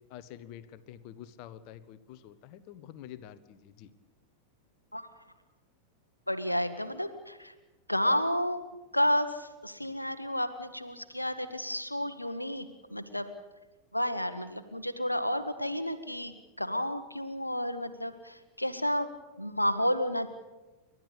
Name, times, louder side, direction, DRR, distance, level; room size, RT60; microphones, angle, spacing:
voice 1, 0.0-3.9, left 11 dB, 45° left, 15 dB, 1.2 m, -48 dB
voice 2, 6.3-7.5 7.9-8.6 8.9-13.3 13.9-19.1 19.4-20.3, equal, 85° left, 10 dB, 1.2 m, -31 dB
30.0 x 12.5 x 8.4 m, 1.1 s
figure-of-eight pair, 90°, 0 cm